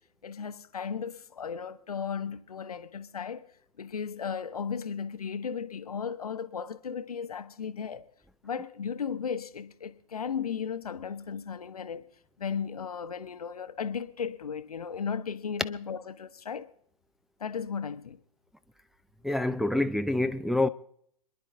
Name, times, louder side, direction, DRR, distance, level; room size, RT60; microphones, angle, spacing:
voice 1, 0.2-3.5 3.8-8.1 8.4-12.0 12.4-16.7 17.4-18.2, left 6 dB, 80° left, 1.0 m, -35 dB
voice 2, 19.2-20.7, left 2 dB, ahead, 0.5 m, -26 dB
27.0 x 10.5 x 3.7 m
figure-of-eight pair, 100°, 19 cm